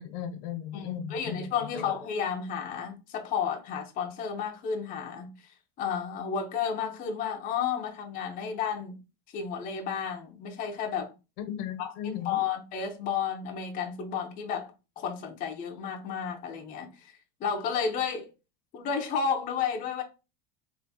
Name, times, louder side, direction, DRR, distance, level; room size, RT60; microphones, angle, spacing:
voice 1, 0.0-1.4 1.7-1.9 11.5-12.4, left 9 dB, 85° left, 1.0 m, -36 dB
voice 2, 0.7-5.3 5.8-9.0 9.3-11.1 11.8-11.9 12.2-17.1 17.4-18.3 18.7-20.0, left 7 dB, 20° left, 0.4 m, -32 dB
3.5 x 2.5 x 3.9 m
cardioid pair, 165°, 46 cm